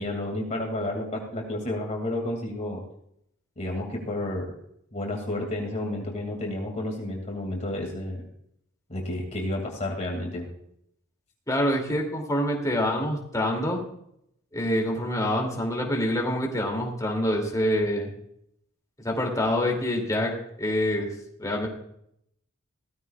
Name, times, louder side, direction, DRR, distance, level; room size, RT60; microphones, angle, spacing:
voice 1, 0.0-2.8 3.6-4.5 4.9-8.2 8.9-10.5, left 1 dB, 35° left, 1 dB, 2.4 m, -31 dB
voice 2, 11.5-13.8 14.5-18.1 19.0-20.3 20.6-21.1 21.4-21.7, left 1 dB, 15° left, 0 dB, 2.7 m, -26 dB
17.0 x 15.0 x 2.4 m, 0.72 s
head